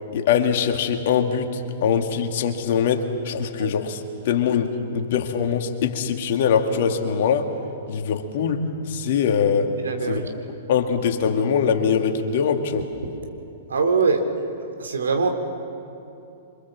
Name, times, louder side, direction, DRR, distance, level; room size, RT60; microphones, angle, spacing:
voice 1, 0.1-7.5 7.9-9.7 10.1-10.2 10.7-12.9, left 7 dB, 55° left, 4 dB, 2.4 m, -22 dB
voice 2, 9.8-10.3 13.7-15.3, right 4 dB, 75° right, 5 dB, 3.5 m, -23 dB
28.0 x 25.5 x 7.5 m, 2.7 s
figure-of-eight pair, 110°, 0 cm